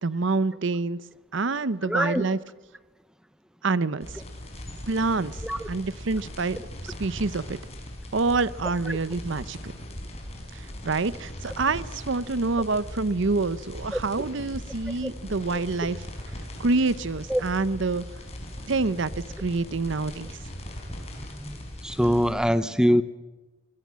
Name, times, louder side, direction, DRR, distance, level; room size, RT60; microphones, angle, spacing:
voice 1, 0.0-1.0 1.3-2.4 3.6-4.1 4.9-5.4 5.7-6.6 6.8-7.6 8.1-9.7 10.5-16.1 16.6-18.0 18.7-20.4, right 3 dB, 60° right, 17 dB, 0.7 m, -27 dB
voice 2, 1.8-2.3 5.4-5.7 15.5-15.6 17.3-17.4 21.3-21.6 21.8-23.0, equal, 5° right, 13 dB, 0.8 m, -23 dB
sound 1, 4.0-22.3, left 1 dB, 30° left, 5.5 m, -39 dB
24.5 x 21.5 x 7.5 m, 1.2 s
head